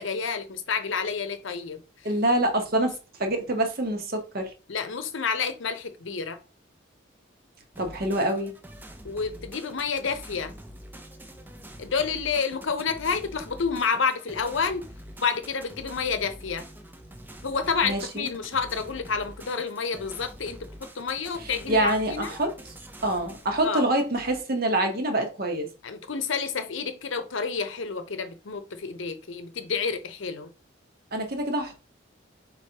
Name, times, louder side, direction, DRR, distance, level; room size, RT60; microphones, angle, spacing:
voice 1, 0.0-2.1 4.7-6.4 9.0-10.5 11.8-14.9 15.2-16.7 17.4-22.4 23.6-23.8 25.8-30.5, left 5 dB, 75° left, 0.7 m, -29 dB
voice 2, 2.0-4.5 7.8-8.5 17.8-18.3 21.4-22.5 23.0-25.7 31.1-31.8, right 1 dB, 50° right, 1.0 m, -26 dB
sound 1, 7.7-24.4, equal, 10° right, 0.5 m, -45 dB
4.6 x 4.0 x 2.9 m
head